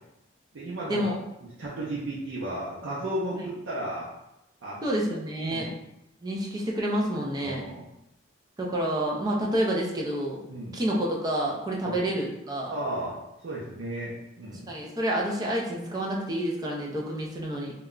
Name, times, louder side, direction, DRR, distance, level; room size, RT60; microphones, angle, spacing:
voice 1, 0.5-1.1 1.6-4.1 4.6-4.8 5.4-5.7 7.4-7.8 10.5-10.8 11.8-12.0 12.7-13.2 13.4-14.7, right 1 dB, 80° right, -6 dB, 0.5 m, -34 dB
voice 2, 4.8-5.7 6.2-7.6 8.6-10.4 10.7-12.7 14.7-17.7, right 1 dB, 20° right, -2 dB, 0.4 m, -28 dB
2.2 x 2.1 x 3.7 m, 0.86 s
head